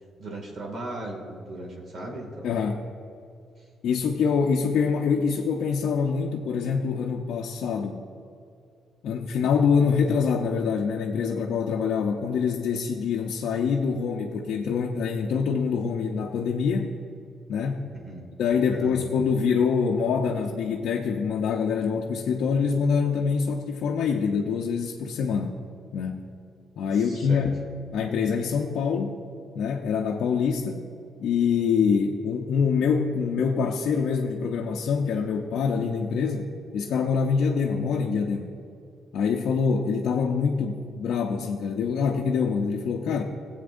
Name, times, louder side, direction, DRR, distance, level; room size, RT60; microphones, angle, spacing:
voice 1, 0.2-2.7 17.9-18.2 18.7-18.9 26.9-27.5, right 2 dB, 50° right, 1 dB, 2.1 m, -37 dB
voice 2, 2.4-2.8 3.8-8.0 9.0-16.9 17.5-17.9 18.4-25.6 25.9-26.3 26.8-27.5 27.9-29.2 29.6-30.8 31.2-38.5 39.1-43.2, left 6 dB, 75° left, 0 dB, 0.6 m, -25 dB
16.5 x 8.1 x 2.6 m, 2.6 s
cardioid pair, 90°, 0 cm